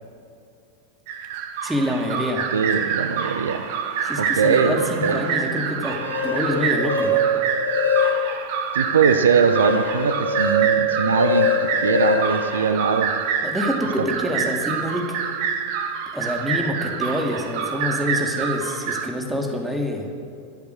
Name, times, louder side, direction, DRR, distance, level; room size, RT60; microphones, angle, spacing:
sound 1, 1.1-19.1, right 7 dB, 50° right, 1.3 m, -27 dB
voice 1, 1.6-2.5 4.0-7.3 13.4-15.2 16.1-20.1, left 1 dB, 5° right, 2 dB, 2.3 m, -26 dB
voice 2, 2.5-3.6 4.2-5.2 8.7-13.1 14.0-14.1, right 6 dB, 70° right, 10 dB, 0.8 m, -21 dB
sound 2, 5.8-8.5 9.0-13.3, left 2 dB, 80° left, 1.7 m, -23 dB
24.0 x 8.3 x 6.3 m, 2.5 s
figure-of-eight pair, 90°, 0 cm